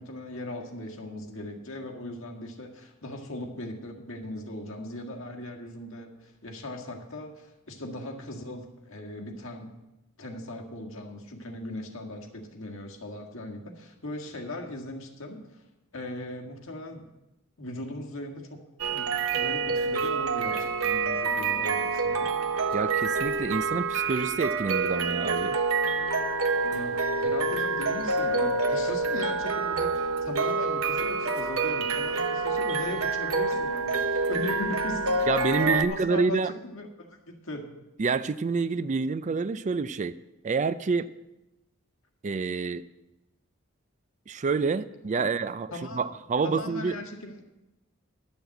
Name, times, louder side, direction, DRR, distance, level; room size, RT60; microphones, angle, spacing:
voice 1, 0.0-9.7 10.2-15.6 15.9-17.1 17.6-18.6 18.9-22.3 26.7-35.1 35.7-37.7 45.2-45.3 45.7-46.0 46.4-47.4, left 1 dB, 65° left, 2 dB, 1.8 m, -38 dB
sound 1, 18.8-35.8, right 4 dB, 75° right, 1.0 m, -27 dB
voice 2, 22.7-25.6 35.3-36.5 38.0-40.2 40.4-41.1 42.2-42.8 44.3-47.0, right 4 dB, 35° right, 14 dB, 0.4 m, -28 dB
11.5 x 7.0 x 7.7 m, 0.96 s
head